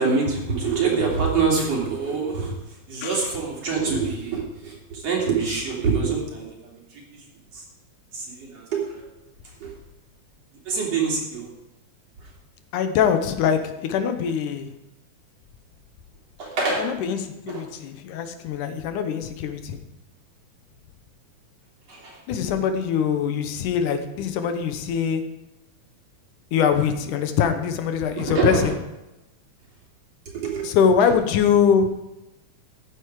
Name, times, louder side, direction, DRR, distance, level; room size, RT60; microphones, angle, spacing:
voice 1, 0.0-2.6 2.9-7.0 7.5-7.6 8.1-9.0 9.6-9.7 10.7-11.5 16.4-16.8 17.5-17.6 21.9-22.2 28.1-28.7 30.3-30.7, right 5 dB, 55° right, -3 dB, 4.1 m, -25 dB
voice 2, 12.7-14.7 16.8-19.8 22.3-25.2 26.5-28.7 30.6-31.9, left 7 dB, 85° left, 8 dB, 2.6 m, -23 dB
14.0 x 9.6 x 4.7 m, 0.96 s
omnidirectional pair, 3.5 m